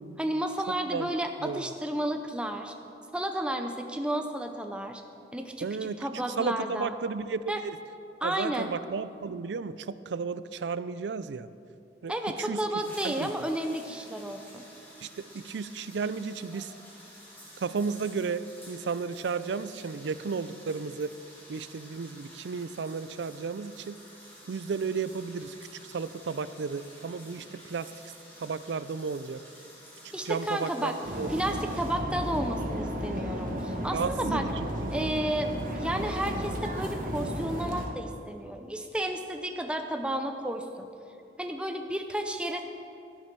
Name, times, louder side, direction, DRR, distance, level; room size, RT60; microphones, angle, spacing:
voice 1, 0.2-2.7 3.1-5.0 5.3-6.9 7.5-7.6 8.2-8.7 12.1-14.6 30.1-31.0 31.3-34.5 34.9-40.9 41.4-42.6, right 1 dB, 5° right, 5 dB, 0.5 m, -32 dB
voice 2, 5.6-7.5 8.2-11.5 12.0-12.1 12.4-12.6 13.0-13.3 15.0-15.1 15.3-16.7 17.6-21.1 21.5-24.0 24.5-25.6 25.9-27.9 28.4-29.4 30.2-30.9 31.2-31.6 33.9-35.2, right 5 dB, 85° right, 15 dB, 0.4 m, -33 dB
sound 1, 12.8-31.9, equal, 10° left, 2.3 m, -51 dB
sound 2, 31.0-37.9, equal, 50° right, 1.2 m, -33 dB
13.0 x 7.5 x 6.1 m, 2.7 s
head